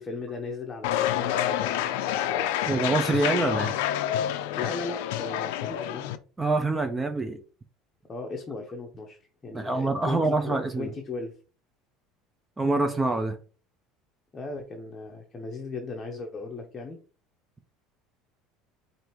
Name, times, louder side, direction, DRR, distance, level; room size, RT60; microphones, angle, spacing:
voice 1, 0.0-2.5 3.1-3.2 4.5-6.1 8.1-11.3 14.3-17.0, left 3 dB, 20° left, 0.7 m, -37 dB
sound 1, 0.8-6.2, left 11 dB, 85° left, 0.4 m, -28 dB
voice 2, 2.7-3.7 6.4-7.4 9.5-10.9 12.6-13.4, right 3 dB, 15° right, 0.4 m, -25 dB
4.8 x 2.6 x 3.0 m
supercardioid pair, 130°, 0 cm